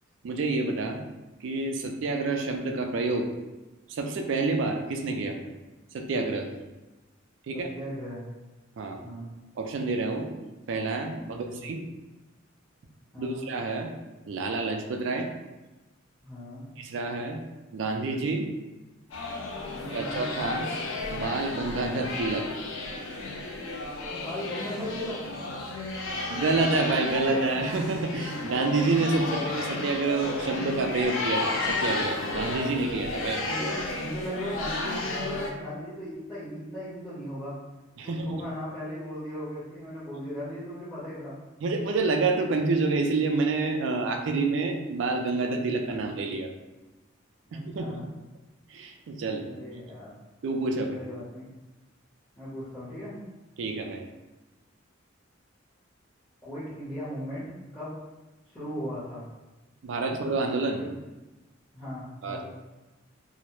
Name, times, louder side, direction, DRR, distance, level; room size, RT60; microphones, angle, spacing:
voice 1, 0.2-1.0 1.4-3.3 3.9-5.4 5.9-6.5 7.5-7.7 8.8-9.0 9.6-10.3 10.7-11.8 13.2-13.9 14.3-15.3 16.8-17.4 17.7-18.5 19.9-20.7 21.1-22.5 26.3-33.4 38.0-38.4 41.6-46.5 47.5-48.1 48.7-49.4 50.4-51.0 53.6-54.0 59.8-60.9 62.2-62.4, right 3 dB, 65° right, 4 dB, 0.3 m, -28 dB
voice 2, 7.5-8.2 9.0-9.3 11.2-11.7 13.1-13.4 16.2-16.6 19.8-20.2 24.1-25.3 29.1-29.5 33.4-37.6 38.0-41.4 45.7-46.1 47.5-48.1 49.4-50.1 50.9-51.4 52.4-53.1 56.4-57.4 57.7-57.9 58.5-59.2 60.1-60.2 60.8-60.9 61.7-62.4, equal, 15° left, -14 dB, 0.8 m, -37 dB
sound 1, 19.1-35.5, left 2 dB, 80° left, 0.4 m, -33 dB
2.2 x 2.0 x 2.9 m, 1.1 s
head